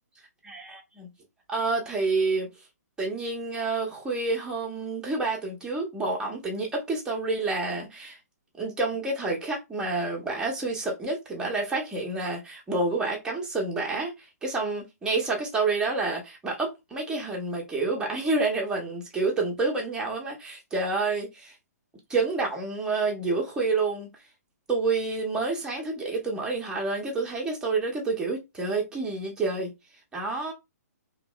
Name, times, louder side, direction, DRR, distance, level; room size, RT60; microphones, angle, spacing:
voice 1, 1.5-2.5 3.0-8.2 8.6-21.6 22.1-24.1 24.7-29.7 30.1-30.5, right 3 dB, 10° right, 1.0 m, -28 dB
2.9 x 2.9 x 2.3 m
figure-of-eight pair, 130°, 9 cm